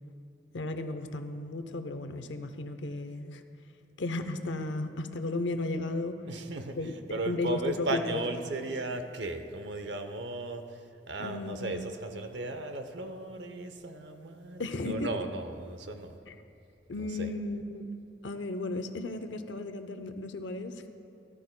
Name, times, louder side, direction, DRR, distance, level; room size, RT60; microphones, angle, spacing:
voice 1, 0.5-3.4 4.0-6.2 6.8-6.9 7.2-8.2 11.2-11.7 14.6-15.1 16.3-16.4 16.9-17.9 18.2-20.8, left 2 dB, 90° left, 8 dB, 0.7 m, -34 dB
voice 2, 6.3-16.2 16.9-17.3, right 2 dB, 75° right, 7 dB, 0.8 m, -36 dB
18.0 x 12.5 x 2.2 m, 2.6 s
head